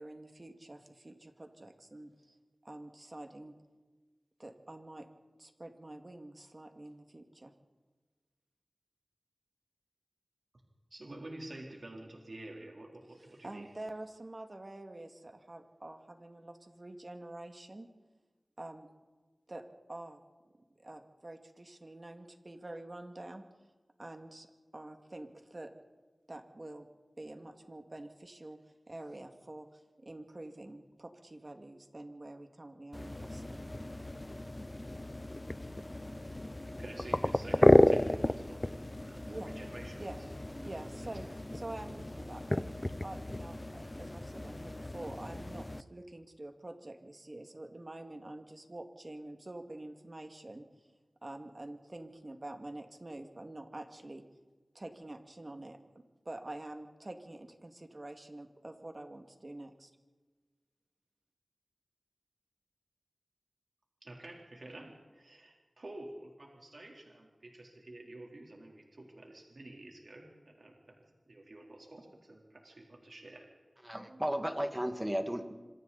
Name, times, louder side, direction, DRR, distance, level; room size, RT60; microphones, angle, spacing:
voice 1, 0.0-2.4 2.6-3.6 4.4-5.1 5.4-7.5 13.4-17.9 18.6-18.9 19.5-20.2 20.8-23.4 24.0-24.5 24.7-25.7 26.3-26.9 27.2-28.6 28.9-33.6 39.3-39.5 40.0-40.2 40.6-41.3 41.5-42.6 43.0-50.7 51.2-54.2 54.7-59.9, right 1 dB, 45° right, 5 dB, 2.3 m, -47 dB
voice 2, 10.9-13.7 36.7-38.7 39.0-40.0 40.6-40.7 41.0-41.1 64.0-71.0 71.3-73.4 73.9-74.7, right 1 dB, 65° right, -1 dB, 3.7 m, -49 dB
sound 1, 32.9-45.8, left 1 dB, 25° left, 0.7 m, -32 dB
voice 3, 73.9-75.5, equal, 10° right, 6 dB, 2.1 m, -34 dB
26.0 x 24.0 x 4.2 m, 1.3 s
wide cardioid pair, 55°, 0 cm